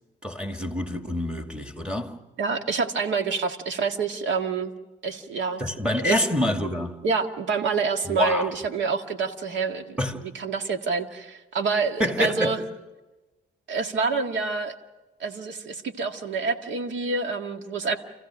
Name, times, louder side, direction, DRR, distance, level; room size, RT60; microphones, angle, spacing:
voice 1, 0.2-2.1 5.6-7.0 8.0-8.5 10.0-10.2 12.0-12.6, left 1 dB, 5° right, 2.3 m, -26 dB
voice 2, 2.4-4.7 5.0-5.6 6.0-6.2 7.0-10.0 10.3-12.6 13.7-14.8 15.2-18.0, right 4 dB, 70° right, 1.9 m, -27 dB
28.0 x 15.5 x 6.4 m
cardioid pair, 90°, 20 cm